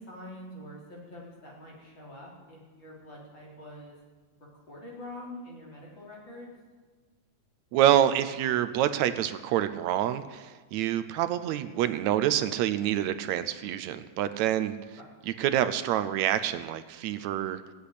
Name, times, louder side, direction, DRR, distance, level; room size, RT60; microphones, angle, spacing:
voice 1, 0.0-3.9 4.7-6.5 15.0-15.1, left 1 dB, 35° left, -3 dB, 4.3 m, -45 dB
voice 2, 7.7-14.7 15.3-17.6, right 11 dB, 75° right, 12 dB, 1.8 m, -27 dB
16.0 x 8.5 x 9.8 m, 1.4 s
omnidirectional pair, 3.6 m